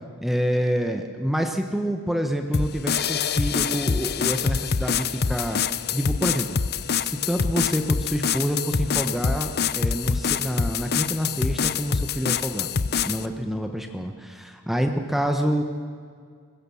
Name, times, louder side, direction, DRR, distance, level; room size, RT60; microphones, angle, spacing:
voice 1, 0.2-5.6 5.9-6.6 7.0-12.7 13.0-15.6, equal, ahead, 5 dB, 1.1 m, -27 dB
sound 1, 2.5-13.3, left 6 dB, 45° left, 0.7 m, -25 dB
22.0 x 21.0 x 7.2 m, 2.1 s
head